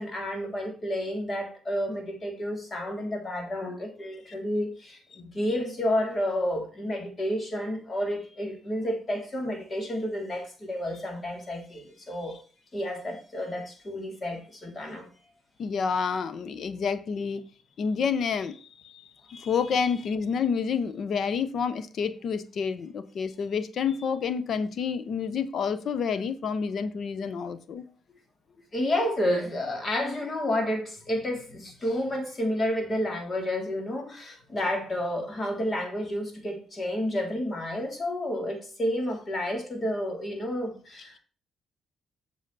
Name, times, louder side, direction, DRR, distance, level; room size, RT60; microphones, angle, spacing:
voice 1, 0.0-12.4 12.7-15.1 28.7-41.2, left 1 dB, 35° left, 3.3 m, -30 dB
voice 2, 15.6-17.4 17.8-27.8, left 6 dB, 60° left, 1.0 m, -29 dB
7.7 x 6.9 x 4.2 m
cardioid pair, 90°, 0 cm